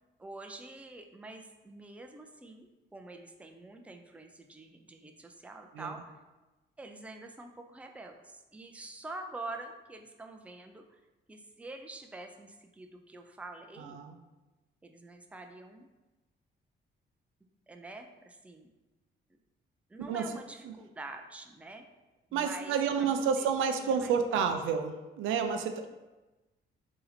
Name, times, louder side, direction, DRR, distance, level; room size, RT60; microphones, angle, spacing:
voice 1, 0.2-6.2 6.8-11.0 11.3-14.0 14.8-15.9 17.7-18.7 19.9-21.8 22.3-23.5 23.8-24.4, right 2 dB, 5° right, 4 dB, 0.4 m, -46 dB
voice 2, 13.8-14.2 20.1-20.7 22.3-25.9, right 6 dB, 85° right, 7 dB, 0.4 m, -30 dB
3.9 x 2.8 x 4.1 m, 1.1 s
cardioid pair, 90°, 20 cm